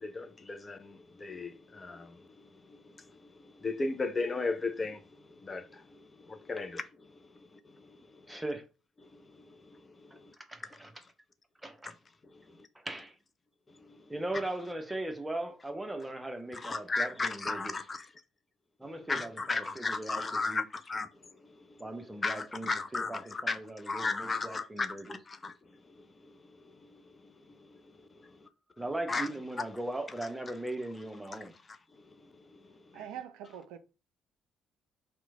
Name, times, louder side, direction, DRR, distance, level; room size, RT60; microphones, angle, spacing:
voice 1, 0.0-2.8 3.2-5.0 5.4-6.8 7.7-8.0 8.3-8.4 9.1-10.3 12.3-12.6 13.8-14.0 16.5-18.1 19.1-21.1 21.4-21.5 22.2-23.6 23.8-26.1 26.8-27.3 27.6-28.4 29.1-29.3 32.2-32.7, left 3 dB, 30° left, 0.4 m, -36 dB
voice 2, 8.3-8.7 10.1-10.2 10.5-10.9 11.6-11.9 12.7-13.1 14.1-17.8 18.8-20.6 21.8-25.2 28.8-31.6, right 1 dB, 10° right, 0.7 m, -39 dB
voice 3, 32.9-33.8, right 9 dB, 65° right, 0.3 m, -43 dB
2.9 x 2.1 x 3.5 m
figure-of-eight pair, 45°, 0 cm